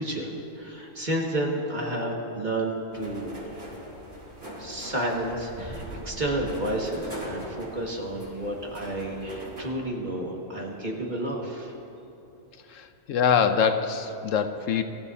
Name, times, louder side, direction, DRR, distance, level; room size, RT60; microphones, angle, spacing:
voice 1, 0.0-3.3 4.6-11.8, right 1 dB, 35° right, -2 dB, 1.9 m, -31 dB
sound 1, 2.9-9.6, right 1 dB, 70° right, 4.7 m, -40 dB
voice 2, 12.7-14.8, left 7 dB, 80° left, 8 dB, 1.1 m, -24 dB
24.5 x 15.0 x 2.8 m, 3.0 s
omnidirectional pair, 1.3 m